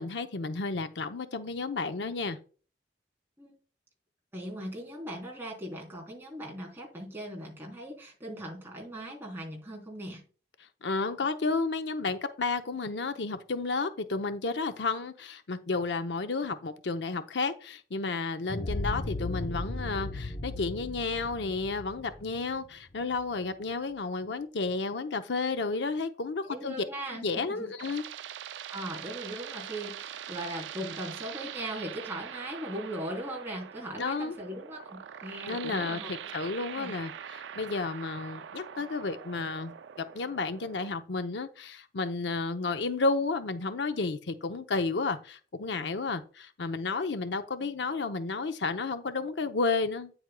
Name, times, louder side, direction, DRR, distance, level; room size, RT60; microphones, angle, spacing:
voice 1, 0.0-2.4 10.8-26.8 27.1-28.0 34.0-34.4 35.5-39.7 40.1-50.1, left 3 dB, 75° left, 0.7 m, -32 dB
voice 2, 4.3-10.2 26.4-27.7 28.7-36.1 36.8-36.9, right 1 dB, 15° right, 3.3 m, -39 dB
sound 1, 18.5-23.2, left 2 dB, 40° left, 0.7 m, -36 dB
sound 2, 27.3-40.9, right 9 dB, 90° right, 0.4 m, -43 dB
9.5 x 7.9 x 2.2 m
head